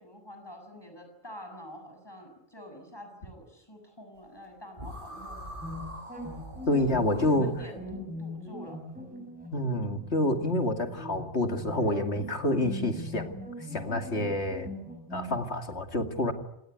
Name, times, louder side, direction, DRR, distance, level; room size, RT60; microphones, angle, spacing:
voice 1, 0.0-5.6 6.6-7.8 8.2-8.8, equal, 20° left, 4 dB, 7.4 m, -47 dB
sound 1, 4.8-8.0, equal, 50° right, 7.1 m, -43 dB
sound 2, 5.6-15.4, left 1 dB, 5° right, 5.8 m, -41 dB
voice 2, 6.7-7.5 9.5-13.4 13.7-14.7 15.1-16.3, left 1 dB, 70° left, 6 dB, 2.7 m, -28 dB
27.5 x 19.0 x 9.4 m, 0.84 s
omnidirectional pair, 1.2 m